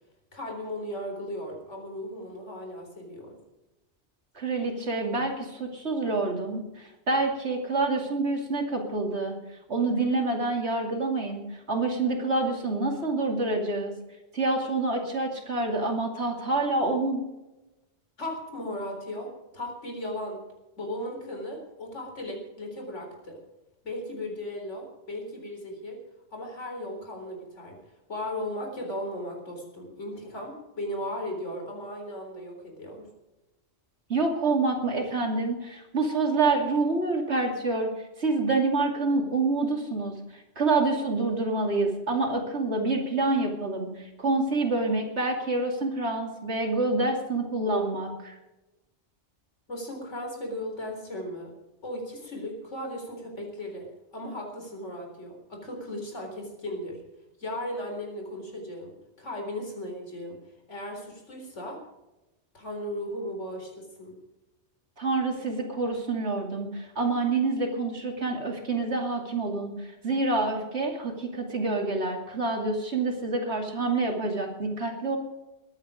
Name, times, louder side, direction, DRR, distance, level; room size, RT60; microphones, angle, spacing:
voice 1, 0.3-3.4 18.2-19.3 19.5-20.4 20.8-23.4 23.8-26.0 26.3-27.8 28.1-33.1 49.7-51.5 51.8-57.0 57.4-60.4 60.7-61.8 62.5-64.2, left 1 dB, 90° left, 2 dB, 4.3 m, -36 dB
voice 2, 4.3-9.3 9.7-13.9 14.3-17.2 34.1-37.9 38.2-48.4 65.0-75.2, right 3 dB, 65° right, 2 dB, 2.9 m, -27 dB
22.0 x 9.1 x 5.1 m, 1.0 s
omnidirectional pair, 1.2 m